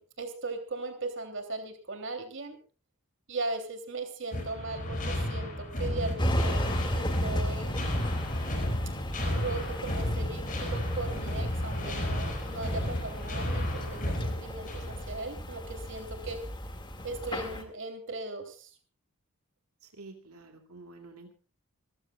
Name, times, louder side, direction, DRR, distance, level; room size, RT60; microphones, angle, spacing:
voice 1, 0.0-2.6 3.3-8.0 9.2-16.4 17.0-18.7, right 3 dB, 55° right, 6 dB, 3.1 m, -38 dB
sound 1, 4.3-15.1, left 1 dB, 35° left, 5.1 m, -32 dB
sound 2, 6.2-17.6, equal, 20° left, 2.1 m, -36 dB
voice 2, 19.8-21.3, right 3 dB, 85° right, 4 dB, 2.5 m, -49 dB
27.5 x 15.0 x 2.4 m, 0.35 s
head